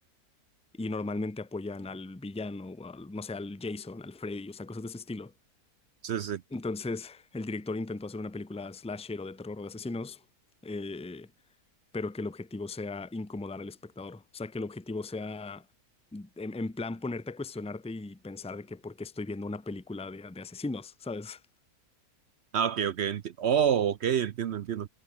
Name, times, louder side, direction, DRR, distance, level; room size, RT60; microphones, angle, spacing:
voice 1, 0.7-5.3 6.5-10.2 10.6-11.3 11.9-15.7 16.1-21.4, left 3 dB, 5° left, 0.5 m, -37 dB
voice 2, 6.0-6.4 22.5-24.9, right 8 dB, 65° right, 0.6 m, -27 dB
omnidirectional pair, 1.8 m